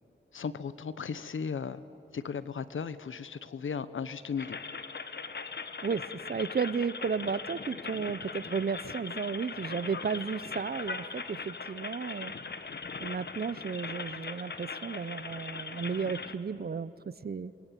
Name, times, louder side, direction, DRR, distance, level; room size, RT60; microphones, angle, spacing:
voice 1, 0.3-1.8 2.1-4.6, left 6 dB, 70° left, 14 dB, 1.0 m, -36 dB
sound 1, 4.4-16.3, left 4 dB, 55° left, 1.3 m, -40 dB
voice 2, 6.3-12.3 13.0-16.9 17.2-17.5, right 5 dB, 50° right, 16 dB, 0.8 m, -33 dB
28.0 x 21.0 x 9.2 m, 2.8 s
wide cardioid pair, 75°, 21 cm